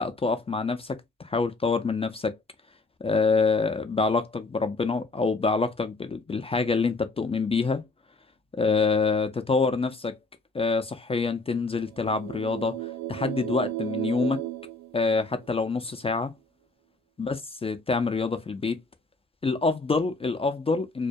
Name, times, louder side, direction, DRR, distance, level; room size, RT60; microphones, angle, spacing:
voice 1, 0.0-2.4 3.0-7.8 8.6-10.2 10.5-12.8 13.1-14.5 14.9-16.3 17.2-18.8 19.4-21.1, left 4 dB, 20° left, 0.4 m, -26 dB
sound 1, 11.8-15.7, right 16 dB, 60° right, 0.5 m, -35 dB
2.2 x 2.2 x 2.5 m
cardioid pair, 90°, 30 cm